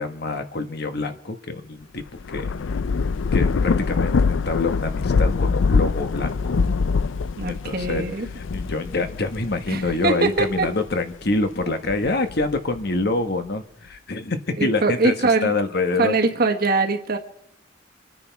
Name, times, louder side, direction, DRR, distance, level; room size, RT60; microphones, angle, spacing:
voice 1, 0.0-2.0 2.3-2.5 3.3-6.6 7.5-8.0 8.3-16.2, left 3 dB, 55° left, 8 dB, 1.3 m, -26 dB
Thunder / Rain, 2.0-10.9 11.4-12.8, left 4 dB, 80° left, 0.5 m, -24 dB
voice 2, 7.4-8.3 9.7-10.7 14.6-15.5 15.9-17.2, right 3 dB, 50° right, 4 dB, 1.5 m, -22 dB
26.5 x 9.8 x 4.6 m, 0.75 s
head